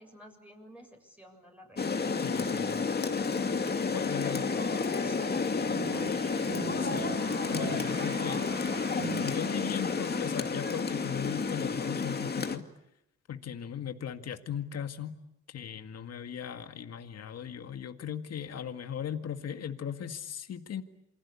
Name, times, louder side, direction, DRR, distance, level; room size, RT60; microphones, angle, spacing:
voice 1, 0.0-2.0 4.0-6.4, equal, 5° right, 2 dB, 7.0 m, -51 dB
Rain, 1.8-12.6, left 4 dB, 30° left, 2.3 m, -31 dB
voice 2, 2.2-2.8 3.9-4.4 6.8-7.1 7.5-8.5 9.2-12.7 13.3-15.2 15.5-20.8, left 8 dB, 55° left, 7 dB, 2.0 m, -37 dB
sound 1, 5.3-9.8, right 5 dB, 45° right, 7.0 m, -41 dB
28.0 x 24.5 x 8.5 m, 0.82 s
cardioid pair, 90°, 30 cm